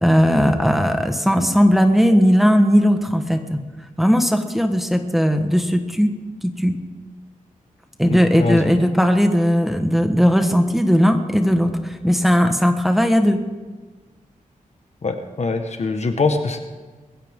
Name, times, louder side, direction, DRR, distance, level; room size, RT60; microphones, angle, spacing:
voice 1, 0.0-3.6 4.0-6.1 6.4-6.8 8.0-13.4, equal, ahead, 5 dB, 1.4 m, -17 dB
voice 2, 8.1-8.7 15.0-16.6, left 3 dB, 55° left, 6 dB, 1.5 m, -23 dB
21.5 x 16.0 x 3.8 m, 1.3 s
wide cardioid pair, 105°, 14 cm